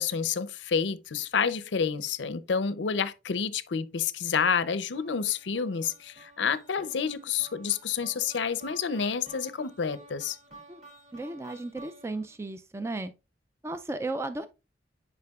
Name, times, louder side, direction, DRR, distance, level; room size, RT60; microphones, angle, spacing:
voice 1, 0.0-10.4, left 6 dB, 85° left, 0.6 m, -29 dB
sound 1, 4.9-12.4, right 2 dB, 40° right, 2.2 m, -52 dB
voice 2, 11.1-13.1 13.6-14.5, right 2 dB, 15° right, 0.3 m, -34 dB
9.7 x 5.0 x 2.3 m
head